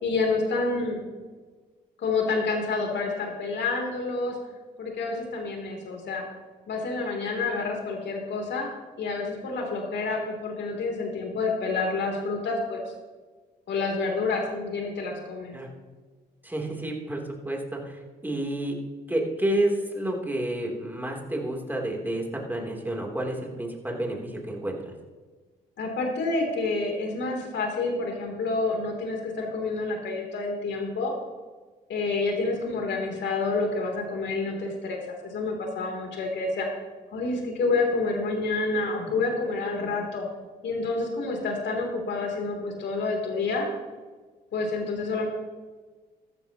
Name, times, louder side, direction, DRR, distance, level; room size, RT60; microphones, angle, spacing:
voice 1, 0.0-1.0 2.0-4.4 4.8-6.2 6.7-8.7 9.0-12.8 13.7-15.5 25.8-31.1 31.9-36.7 37.1-40.3 40.6-43.7 44.5-45.3, left 3 dB, 65° left, 1 dB, 3.4 m, -28 dB
voice 2, 16.4-18.8 19.1-24.8, right 1 dB, 10° right, 0 dB, 3.4 m, -30 dB
14.0 x 12.0 x 3.0 m, 1.4 s
supercardioid pair, 55°, 19 cm